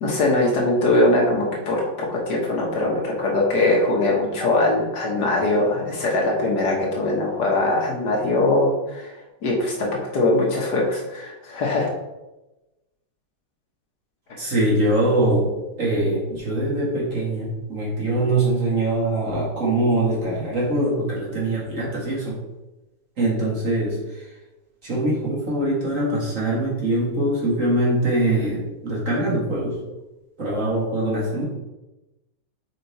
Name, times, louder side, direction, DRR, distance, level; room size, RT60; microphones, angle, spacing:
voice 1, 0.0-11.9 14.3-14.4, left 2 dB, 60° left, -2 dB, 1.8 m, -21 dB
voice 2, 14.4-22.4 23.2-24.3 24.8-29.8 30.4-31.4, right 1 dB, 45° right, -5 dB, 2.1 m, -23 dB
6.3 x 4.5 x 4.1 m, 1.0 s
omnidirectional pair, 2.0 m